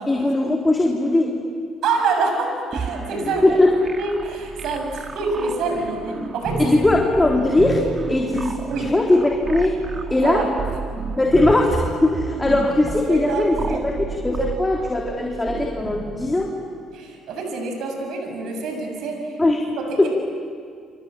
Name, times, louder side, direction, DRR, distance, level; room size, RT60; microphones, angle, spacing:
voice 1, 0.1-1.3 3.2-3.7 6.6-7.8 8.1-9.7 10.1-10.4 11.2-16.5 19.4-19.7 20.0-20.1, left 2 dB, 15° left, -1 dB, 3.7 m, -19 dB
voice 2, 1.8-3.6 4.0-6.7 8.7-8.9 10.2-10.5 13.1-13.9 16.9-19.4 19.8-20.1, right 4 dB, 75° right, 3 dB, 6.9 m, -26 dB
sound 1, 2.7-16.3, right 4 dB, 40° right, 2.4 m, -31 dB
28.0 x 28.0 x 7.6 m, 2.1 s
supercardioid pair, 75°, 0 cm